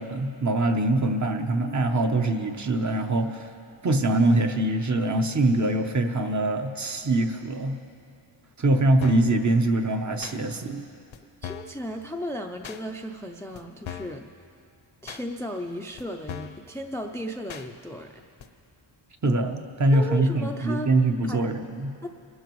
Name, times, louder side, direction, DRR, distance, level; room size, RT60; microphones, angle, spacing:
voice 1, 0.0-3.5 3.8-7.8 8.6-10.8 19.2-21.9, right 2 dB, 35° right, 5 dB, 0.8 m, -23 dB
sound 1, 9.0-9.3 10.2-10.4 11.1-11.2 11.4-11.8 12.6-12.8 13.5-13.6 13.8-14.2 15.1-15.2 16.0-16.1 16.3-16.6 17.5-17.7 18.4-18.5, left 9 dB, 70° left, 0.8 m, -38 dB
voice 2, 11.4-14.2 15.0-18.2 19.9-20.9 21.3-21.5 22.0-22.1, equal, 5° left, 4 dB, 0.4 m, -35 dB
25.0 x 12.5 x 3.1 m, 2.4 s
wide cardioid pair, 140°, 48 cm